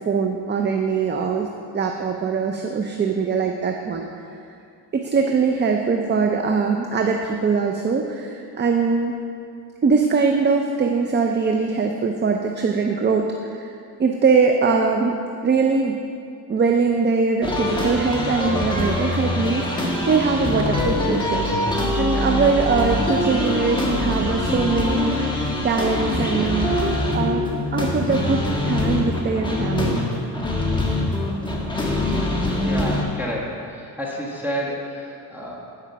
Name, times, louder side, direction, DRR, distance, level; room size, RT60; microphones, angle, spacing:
voice 1, 0.1-1.5 1.7-4.3 4.9-9.1 9.8-16.0 16.5-21.5 22.0-27.5 27.7-30.0, right 5 dB, 25° right, 3 dB, 0.5 m, -22 dB
sound 1, 17.4-33.0, left 1 dB, 10° left, 1.4 m, -23 dB
voice 2, 32.6-35.6, equal, 5° right, -6 dB, 1.3 m, -30 dB
10.0 x 5.1 x 5.7 m, 2.5 s
cardioid pair, 110°, 41 cm